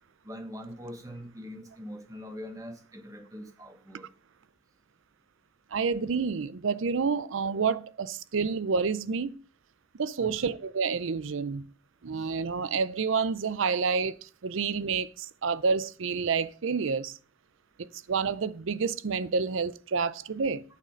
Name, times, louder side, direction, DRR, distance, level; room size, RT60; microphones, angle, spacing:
voice 1, 0.2-4.1 10.2-10.3 12.2-12.3, equal, 15° right, 1.2 m, -43 dB
voice 2, 5.7-9.4 10.0-11.7 12.0-17.2 17.8-20.6, right 5 dB, 70° right, 0.5 m, -29 dB
8.2 x 6.7 x 3.8 m
head